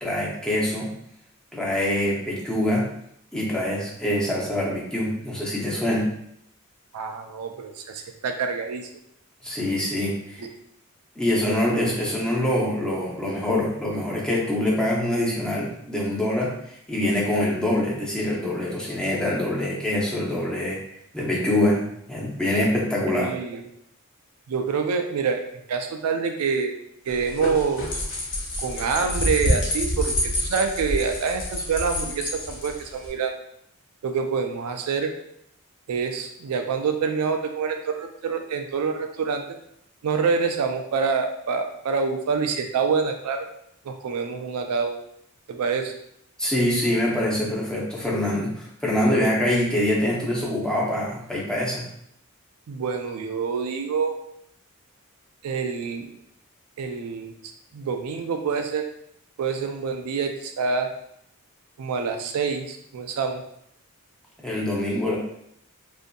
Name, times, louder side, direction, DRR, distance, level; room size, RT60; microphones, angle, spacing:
voice 1, 0.0-1.0 1.5-2.9 3.3-6.1 9.4-10.5 11.2-20.8 21.1-21.8 22.1-23.3 46.4-51.9 64.4-65.2, left 1 dB, 5° left, -4 dB, 0.5 m, -24 dB
voice 2, 6.9-8.9 23.1-23.6 24.5-26.7 27.1-28.0 28.6-33.3 34.0-35.2 35.9-39.4 40.0-43.5 43.8-45.0 45.5-45.9 52.7-54.2 55.4-56.1 56.8-57.3 57.7-58.9 59.4-60.9 61.8-63.4, right 5 dB, 85° right, 5 dB, 0.4 m, -26 dB
sound 1, 27.1-33.1, left 1 dB, 60° left, 0.7 m, -27 dB
2.6 x 2.5 x 2.2 m, 0.73 s
head